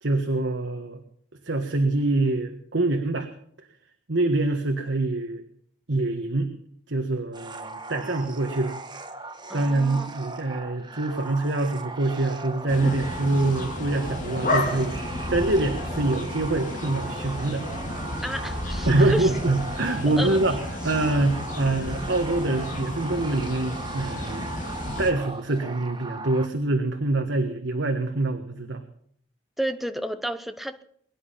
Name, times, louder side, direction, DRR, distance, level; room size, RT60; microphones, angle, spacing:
voice 1, 0.0-1.0 1.4-3.3 4.1-5.4 5.9-6.5 6.9-8.8 9.5-14.9 15.3-17.7 18.8-24.5 25.0-28.8, right 2 dB, 70° right, 6 dB, 1.5 m, -25 dB
sound 1, 7.3-26.5, right 3 dB, 25° right, 1.4 m, -39 dB
voice 2, 9.5-10.1 18.2-19.3 20.2-20.4 29.6-30.8, right 1 dB, ahead, 9 dB, 0.9 m, -31 dB
sound 2, 12.7-25.1, left 1 dB, 40° left, 2.9 m, -32 dB
22.5 x 10.5 x 5.7 m, 0.64 s
head